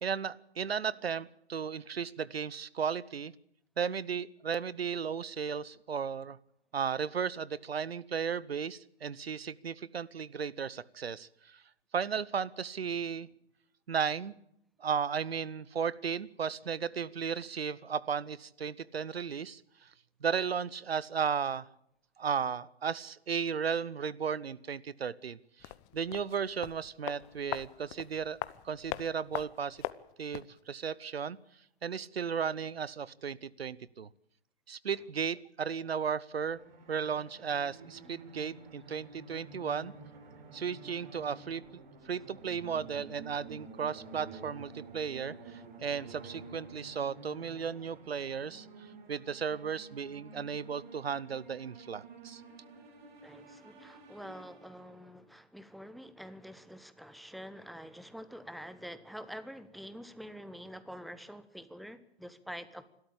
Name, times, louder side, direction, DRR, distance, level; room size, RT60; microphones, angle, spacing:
voice 1, 0.0-3.3 3.8-6.4 6.7-11.6 11.9-13.3 13.9-14.4 14.8-19.9 20.2-21.7 22.2-28.4 28.6-29.8 30.2-31.4 31.8-34.1 34.7-36.6 36.9-39.9 40.5-41.6 42.0-52.4, right 6 dB, 75° right, 20 dB, 0.9 m, -35 dB
sound 1, 25.6-30.6 30.8-30.9, left 17 dB, 30° left, 0.9 m, -41 dB
sound 2, 36.4-55.1, right 3 dB, 50° right, 4.5 m, -51 dB
voice 2, 53.2-62.9, equal, ahead, 13 dB, 1.0 m, -46 dB
26.5 x 13.0 x 8.6 m, 0.77 s
figure-of-eight pair, 115°, 31 cm